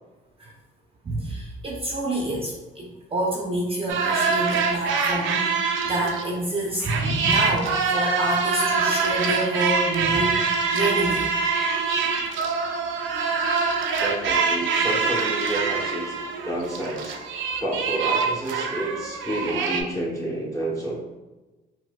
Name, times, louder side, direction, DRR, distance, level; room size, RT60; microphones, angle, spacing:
voice 1, 1.0-10.4 10.7-11.3, right 1 dB, 30° right, -2 dB, 0.6 m, -27 dB
sound 1, 3.9-6.4 6.8-19.8, right 5 dB, 80° right, 0.4 m, -24 dB
voice 2, 14.0-16.1 16.4-17.2 17.6-21.0, right 1 dB, 15° left, -4 dB, 1.0 m, -29 dB
4.5 x 2.1 x 2.2 m, 1.1 s
cardioid pair, 90°, 20 cm